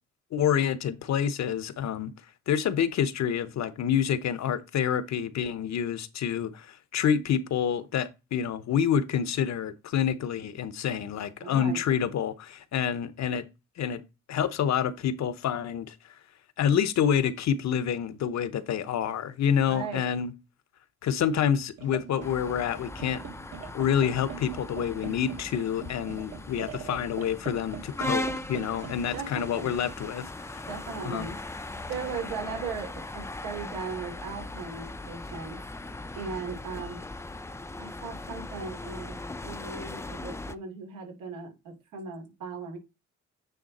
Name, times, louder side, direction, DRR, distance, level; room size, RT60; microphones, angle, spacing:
voice 1, 0.3-2.1 2.5-13.4 13.8-14.0 14.3-15.9 16.6-20.3 21.0-23.2 23.7-30.7 31.0-31.3, left 8 dB, 65° left, 0.9 m, -28 dB
voice 2, 11.4-11.8 19.6-20.0 29.1-29.7 30.6-35.6 36.1-37.0 37.8-42.8, right 5 dB, 90° right, 3.1 m, -38 dB
sound 1, 21.8-32.2, right 7 dB, 55° right, 1.3 m, -44 dB
sound 2, 22.2-40.6, left 2 dB, 10° left, 0.5 m, -39 dB
9.3 x 3.5 x 4.1 m
cardioid pair, 90°, 30 cm